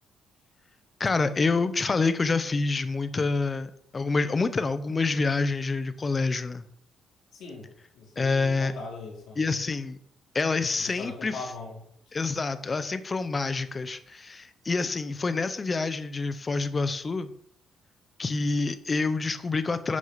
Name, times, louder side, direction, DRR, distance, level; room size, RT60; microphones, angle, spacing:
voice 1, 1.0-6.6 8.2-8.7 9.4-10.0 10.3-11.5 12.1-17.3 18.2-20.0, left 3 dB, 20° left, 12 dB, 0.7 m, -27 dB
voice 2, 7.3-9.4 10.7-11.8, left 3 dB, 65° left, -2 dB, 4.5 m, -40 dB
10.5 x 6.4 x 5.7 m, 0.65 s
cardioid pair, 165°, 0 cm